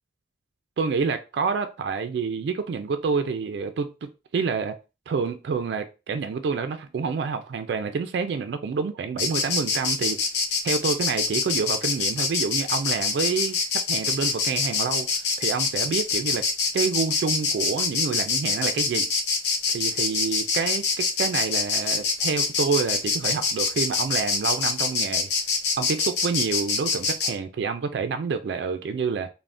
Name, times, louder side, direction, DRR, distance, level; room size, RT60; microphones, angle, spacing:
voice 1, 0.8-3.9 4.3-4.7 5.1-10.2 10.6-13.6 13.9-15.1 15.4-16.4 16.7-19.1 19.7-25.3 25.8-29.3, right 5 dB, 70° right, 0.3 m, -28 dB
Insect, 9.2-27.3, left 4 dB, 75° left, 0.6 m, -25 dB
3.4 x 2.0 x 2.5 m
head